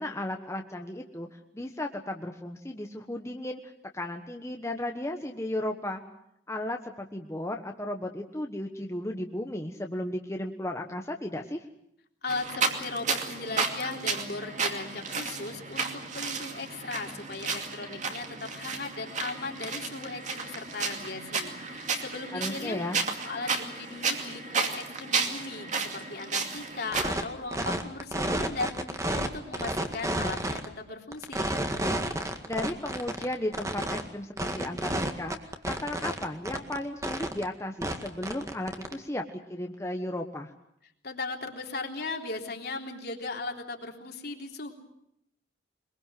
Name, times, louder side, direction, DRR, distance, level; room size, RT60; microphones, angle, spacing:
voice 1, 0.0-3.6 3.9-6.0 6.5-11.6 22.3-23.0 32.4-40.5, left 1 dB, 15° left, 3 dB, 1.3 m, -35 dB
voice 2, 12.2-22.8 23.2-28.7 29.1-31.5 41.0-44.7, left 3 dB, 60° left, 2 dB, 3.5 m, -37 dB
sound 1, 12.3-27.1, right 4 dB, 40° right, 2.5 m, -33 dB
sound 2, 26.9-27.2 27.5-29.3 29.5-30.7 31.1-34.0 34.4-36.8 37.0-37.4 37.8-38.9, right 1 dB, 15° right, 1.9 m, -30 dB
23.0 x 22.5 x 7.6 m, 0.77 s
head